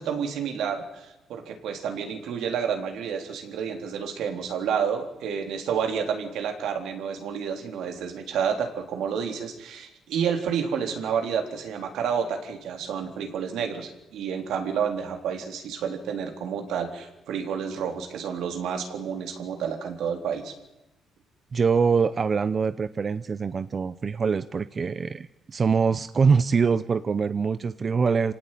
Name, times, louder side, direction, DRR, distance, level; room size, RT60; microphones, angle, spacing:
voice 1, 0.0-20.6, right 7 dB, 80° right, 5 dB, 3.7 m, -30 dB
voice 2, 21.5-28.3, right 5 dB, 40° right, 13 dB, 0.8 m, -24 dB
26.5 x 18.0 x 9.3 m, 0.95 s
cardioid pair, 90°, 0 cm